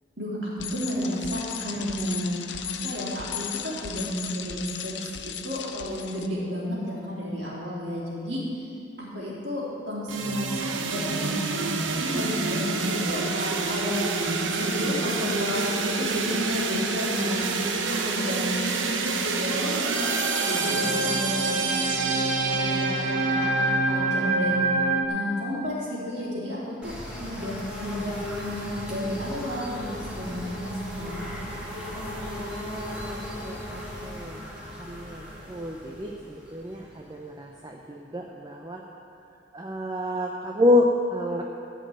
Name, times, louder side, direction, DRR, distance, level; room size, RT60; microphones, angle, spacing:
voice 1, 0.2-8.4 9.0-14.0 14.4-17.5 17.9-24.7 25.1-31.3, equal, 65° right, -6 dB, 3.4 m, -32 dB
Bicycle, 0.6-6.3, left 9 dB, 65° left, 0.6 m, -36 dB
sound 1, 10.1-25.1, right 3 dB, 90° right, 0.9 m, -26 dB
sound 2, 26.8-37.4, left 1 dB, 5° right, 2.3 m, -37 dB
voice 2, 32.4-38.8 39.5-41.5, left 1 dB, 20° right, 0 dB, 0.6 m, -29 dB
13.0 x 5.3 x 8.9 m, 2.6 s
head